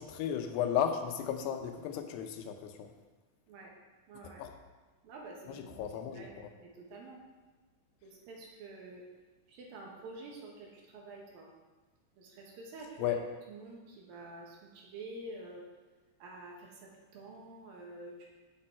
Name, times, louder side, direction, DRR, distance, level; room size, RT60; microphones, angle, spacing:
voice 1, 0.0-2.9 4.4-4.5 5.5-6.5 13.0-13.2, left 9 dB, 90° left, 6 dB, 2.9 m, -34 dB
voice 2, 4.1-4.4 5.0-7.2 8.0-9.1 9.5-11.5 12.2-13.2 13.5-15.7 16.2-18.3, right 2 dB, 70° right, -1 dB, 3.0 m, -48 dB
10.0 x 7.0 x 4.4 m, 1.3 s
omnidirectional pair, 4.6 m